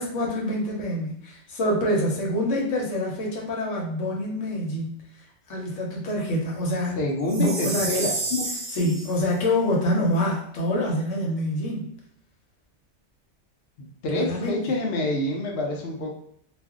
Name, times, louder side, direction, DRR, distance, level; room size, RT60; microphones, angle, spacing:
voice 1, 0.0-5.0 5.5-7.0 7.3-8.1 8.7-11.9 14.1-14.6, left 1 dB, 85° left, -1 dB, 1.1 m, -26 dB
voice 2, 7.0-8.5 13.8-16.1, left 2 dB, 65° left, 0 dB, 0.8 m, -27 dB
Chime, 7.3-9.3, right 3 dB, 50° right, 0.7 m, -30 dB
2.5 x 2.1 x 3.6 m, 0.69 s
omnidirectional pair, 1.3 m